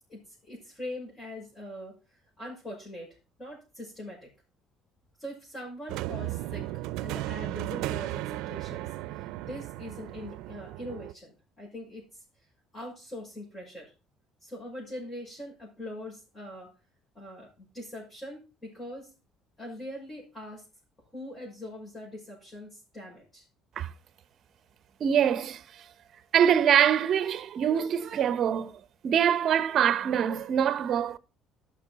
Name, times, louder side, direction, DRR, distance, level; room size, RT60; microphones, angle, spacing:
voice 1, 0.1-4.3 5.2-12.2 12.7-13.9 14.4-16.7 17.1-19.1 19.6-20.7 21.1-23.5, left 1 dB, 25° left, 5.9 m, -42 dB
sound 1, 5.9-11.1, right 16 dB, 85° right, 0.5 m, -35 dB
voice 2, 25.0-25.9 26.3-31.2, right 9 dB, 45° right, 0.8 m, -24 dB
14.0 x 6.3 x 4.1 m
cardioid pair, 130°, 0 cm